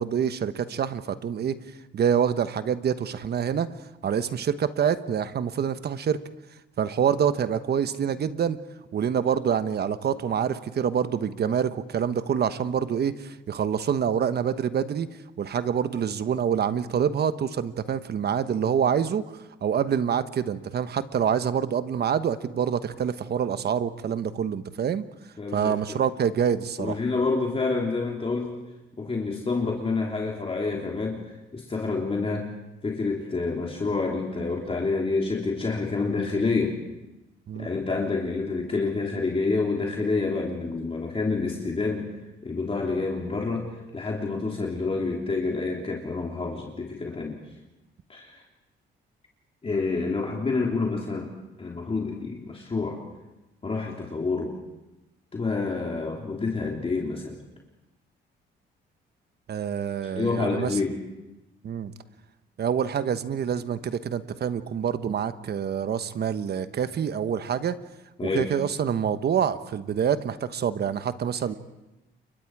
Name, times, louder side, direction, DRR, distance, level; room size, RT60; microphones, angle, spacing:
voice 1, 0.0-1.6 1.9-3.7 4.0-6.2 6.8-8.6 8.9-15.1 15.4-25.0 25.5-27.0 37.5-37.7 59.5-60.8 61.6-61.9 62.6-67.8 68.2-71.6, right 8 dB, 55° right, 12 dB, 1.2 m, -26 dB
voice 2, 25.4-25.8 26.8-28.6 29.0-31.2 31.5-32.5 32.8-36.8 37.5-42.1 42.4-47.4 48.1-48.4 49.6-51.3 51.6-53.0 53.6-54.6 55.3-57.4 60.0-61.0 68.2-68.5, left 3 dB, 30° left, -1 dB, 3.4 m, -28 dB
29.0 x 23.5 x 4.8 m, 1.0 s
cardioid pair, 90°, 20 cm